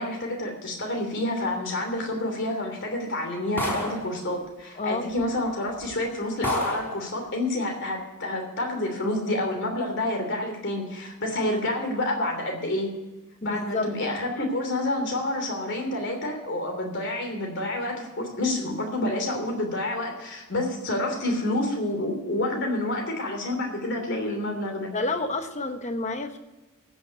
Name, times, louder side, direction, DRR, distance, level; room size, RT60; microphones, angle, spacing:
voice 1, 0.0-12.9 13.4-24.9, left 1 dB, 55° left, 3 dB, 3.1 m, -28 dB
sound 1, 3.6-4.1 5.2-5.3 5.8-5.9 6.4-7.0, equal, 10° left, 3.4 m, -29 dB
voice 2, 4.8-5.1 13.4-13.9 24.9-26.4, left 3 dB, 30° left, 8 dB, 1.0 m, -29 dB
15.0 x 6.2 x 8.1 m, 1.1 s
head